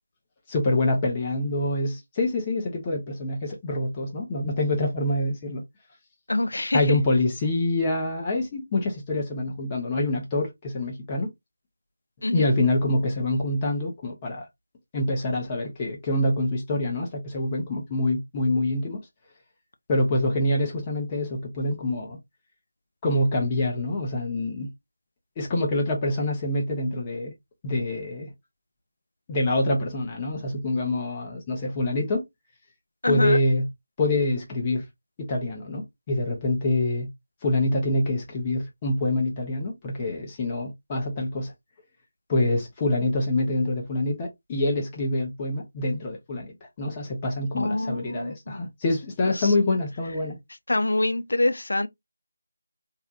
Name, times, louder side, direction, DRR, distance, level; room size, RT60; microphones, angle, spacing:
voice 1, 0.5-5.6 6.7-11.3 12.3-14.5 14.9-19.0 19.9-22.2 23.0-24.7 25.4-27.3 27.6-28.3 29.3-32.2 33.1-33.7 34.0-34.8 35.2-37.1 37.4-41.5 42.3-50.4, left 2 dB, 20° left, 0.8 m, -26 dB
voice 2, 6.3-7.0 12.2-12.5 33.0-33.4 47.6-48.7 49.3-49.5 50.7-51.9, left 2 dB, 65° left, 0.5 m, -25 dB
3.3 x 2.7 x 2.4 m
figure-of-eight pair, 165°, 0 cm